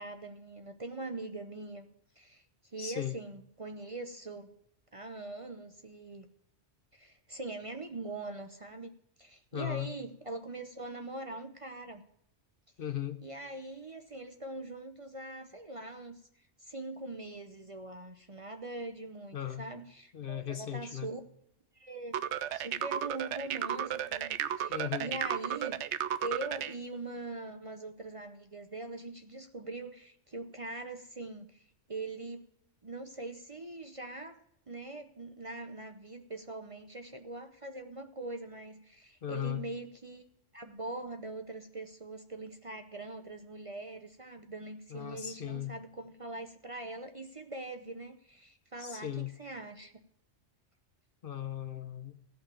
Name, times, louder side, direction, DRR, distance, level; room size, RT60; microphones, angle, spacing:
voice 1, 0.0-1.9 2.2-2.4 2.7-4.5 4.9-6.3 6.9-8.9 9.2-12.0 13.2-16.2 16.6-21.2 21.7-22.2 22.5-25.8 26.2-32.4 32.8-34.4 34.7-40.3 40.5-49.9, right 2 dB, 30° right, 7 dB, 0.7 m, -42 dB
voice 2, 2.8-3.2 9.5-9.9 12.8-13.2 19.3-19.7 20.1-21.1 24.7-25.1 39.2-39.6 44.9-45.7 48.8-49.3 51.2-52.1, left 11 dB, 55° left, 10 dB, 0.8 m, -37 dB
sound 1, 22.1-26.7, right 10 dB, 70° right, 0.9 m, -33 dB
15.5 x 5.8 x 6.9 m, 0.78 s
omnidirectional pair, 1.2 m